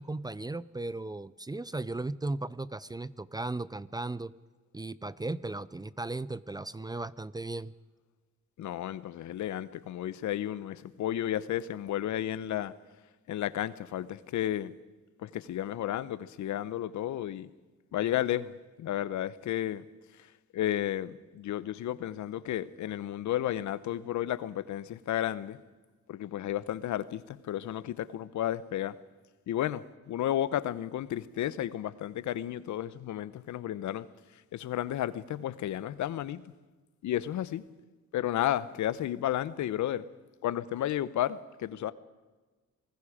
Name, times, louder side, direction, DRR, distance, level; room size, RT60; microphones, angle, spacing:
voice 1, 0.0-4.3 4.7-7.7, right 2 dB, 15° right, 0.5 m, -36 dB
voice 2, 8.6-12.7 13.3-14.7 15.2-17.5 17.9-18.5 18.8-19.8 20.5-25.6 26.1-28.9 29.5-34.1 34.5-36.4 37.0-37.6 38.1-40.0 40.4-41.9, left 12 dB, 70° left, 0.9 m, -32 dB
26.5 x 19.5 x 5.1 m
cardioid pair, 90°, 30 cm